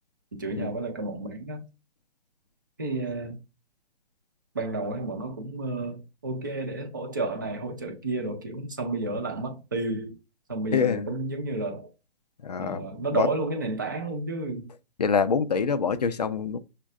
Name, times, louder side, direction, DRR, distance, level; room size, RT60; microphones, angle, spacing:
voice 1, 0.3-1.7 2.8-3.4 4.5-10.2 10.5-11.9 12.6-14.7, right 2 dB, 20° right, 0.4 m, -31 dB
voice 2, 10.7-11.1 12.4-12.9 13.1-13.3 15.0-16.6, left 6 dB, 40° left, 0.4 m, -25 dB
6.2 x 2.2 x 3.6 m
hypercardioid pair, 160°, 32 cm